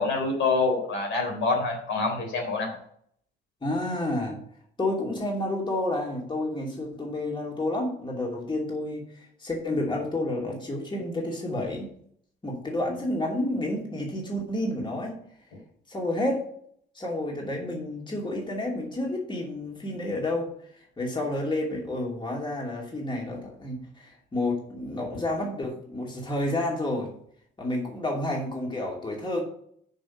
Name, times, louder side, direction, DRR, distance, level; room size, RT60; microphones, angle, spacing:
voice 1, 0.0-2.8, left 3 dB, 75° left, 1 dB, 3.6 m, -26 dB
voice 2, 3.6-4.4 4.8-9.0 9.4-11.9 12.4-15.2 15.9-16.5 16.9-20.5 21.0-27.1 27.6-29.4, left 1 dB, 25° left, -1 dB, 2.8 m, -30 dB
6.7 x 5.6 x 7.3 m, 0.64 s
cardioid pair, 90°, 20 cm